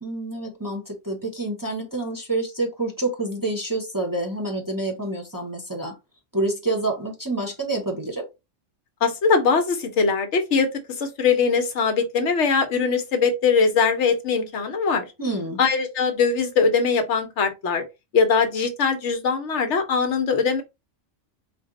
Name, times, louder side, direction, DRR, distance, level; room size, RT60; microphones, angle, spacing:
voice 1, 0.0-5.9 6.3-8.3 15.2-15.6, right 2 dB, 20° right, 0.8 m, -28 dB
voice 2, 9.0-10.7 11.0-15.1 15.6-17.8 18.1-20.6, left 5 dB, 70° left, 1.1 m, -21 dB
4.2 x 2.0 x 3.7 m
omnidirectional pair, 1.3 m